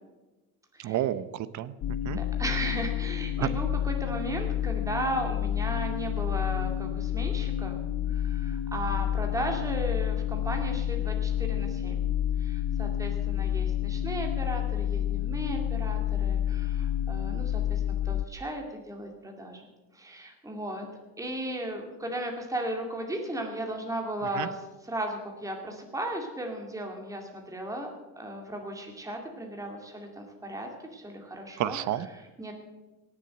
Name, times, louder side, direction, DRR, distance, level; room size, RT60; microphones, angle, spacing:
voice 1, 0.8-1.7 2.0-2.2 3.4-3.5 24.4-24.5 31.6-32.1, right 12 dB, 55° right, 15 dB, 0.8 m, -30 dB
sound 1, 1.8-18.2, left 10 dB, 50° left, 0.6 m, -29 dB
voice 2, 2.1-7.8 8.1-12.0 12.4-19.7 19.9-20.9 21.2-31.8 32.1-32.5, right 1 dB, 10° right, 2 dB, 2.3 m, -36 dB
18.0 x 7.5 x 7.7 m, 1.2 s
cardioid pair, 135°, 35 cm